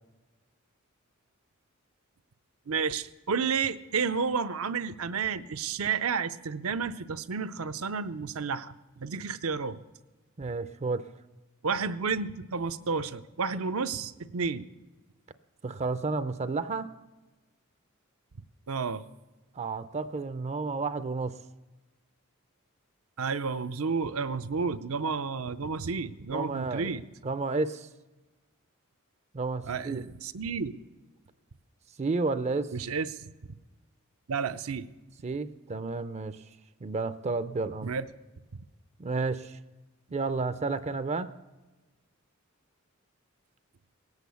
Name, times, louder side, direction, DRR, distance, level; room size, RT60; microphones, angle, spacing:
voice 1, 2.7-9.8 11.6-14.7 18.7-19.0 23.2-27.0 29.7-30.8 32.7-33.1 34.3-34.9 37.8-38.0, right 5 dB, 75° right, 11 dB, 0.6 m, -31 dB
voice 2, 10.4-11.0 15.6-16.9 19.5-21.3 26.3-26.9 27.2-27.9 29.3-30.0 32.0-32.7 35.2-36.4 36.8-37.9 39.0-39.6 40.1-41.3, right 3 dB, 30° right, 13 dB, 0.4 m, -31 dB
18.0 x 8.2 x 6.9 m, 1.2 s
head